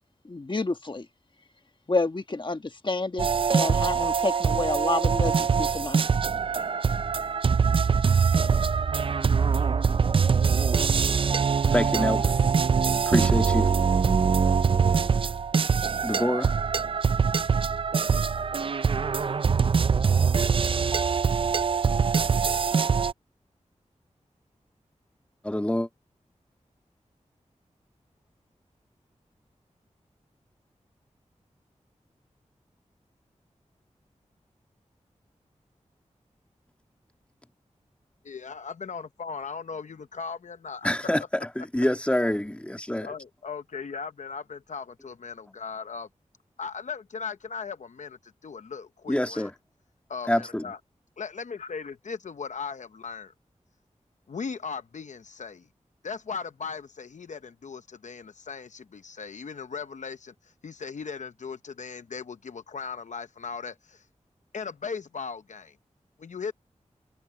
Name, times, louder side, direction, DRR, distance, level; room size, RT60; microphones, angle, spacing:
voice 1, 0.3-1.0 1.9-6.0 9.2-9.4, left 3 dB, 40° left, 1.4 m, -29 dB
sound 1, 3.2-23.1, right 6 dB, 45° right, 0.3 m, -23 dB
voice 2, 11.7-12.3 13.1-13.7 16.0-16.5 25.4-25.9 40.8-43.1 49.1-49.5 50.3-50.7, left 1 dB, 10° left, 1.9 m, -26 dB
voice 3, 38.2-40.9 43.0-46.1 46.6-49.5 50.1-50.8 51.2-53.3 54.3-55.7 56.0-60.3 60.6-64.0 64.5-65.7 66.2-66.5, left 5 dB, 75° left, 0.7 m, -38 dB
wide cardioid pair, 75°, 13 cm